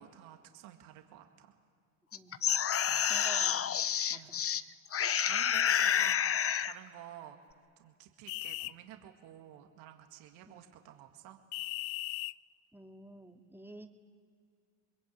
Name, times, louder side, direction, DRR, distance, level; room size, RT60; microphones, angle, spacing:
voice 1, 0.0-1.6 2.9-3.1 4.1-4.4 5.3-7.4 7.8-11.4, right 11 dB, 75° right, 4 dB, 2.2 m, -52 dB
sound 1, 2.1-4.6 4.9-6.8, left 8 dB, 30° left, 0.7 m, -29 dB
sound 2, 2.5-3.3 5.5-6.2 8.3-8.7 11.5-12.4, left 21 dB, 75° left, 0.6 m, -38 dB
voice 2, 3.1-3.8 4.1-4.4 10.5-10.6 12.7-13.9, right 1 dB, 5° right, 3 dB, 2.3 m, -50 dB
27.5 x 22.0 x 8.6 m, 2.2 s
supercardioid pair, 85°, 48 cm